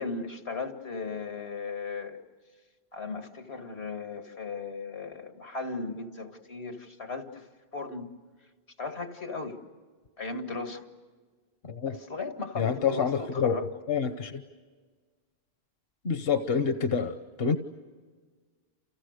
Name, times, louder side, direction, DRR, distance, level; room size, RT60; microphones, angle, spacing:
voice 1, 0.0-2.2 2.9-7.5 7.7-8.1 8.8-9.6 10.2-10.8 11.9-13.6, left 4 dB, 90° left, 7 dB, 2.3 m, -36 dB
voice 2, 11.6-11.9 12.6-13.6 13.9-14.4 16.0-17.6, left 6 dB, 70° left, 9 dB, 1.2 m, -27 dB
29.5 x 29.0 x 6.6 m, 1.5 s
omnidirectional pair, 1.0 m